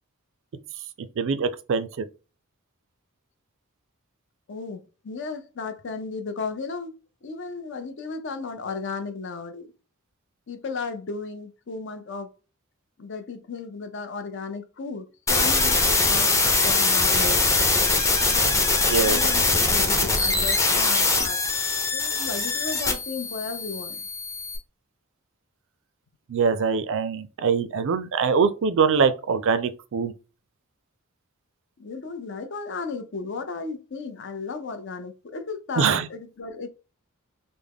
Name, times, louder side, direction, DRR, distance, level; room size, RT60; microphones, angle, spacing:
voice 1, 1.2-2.0 18.9-19.2 26.3-30.1 35.8-36.1, right 5 dB, 60° right, 0.4 m, -23 dB
voice 2, 4.5-6.9 7.2-9.7 10.5-12.3 13.0-16.3 16.6-17.7 18.2-21.4 21.9-24.0 31.8-36.7, left 4 dB, 55° left, 0.6 m, -35 dB
sound 1, 15.3-24.6, left 3 dB, 15° left, 0.5 m, -22 dB
3.4 x 2.1 x 3.5 m
head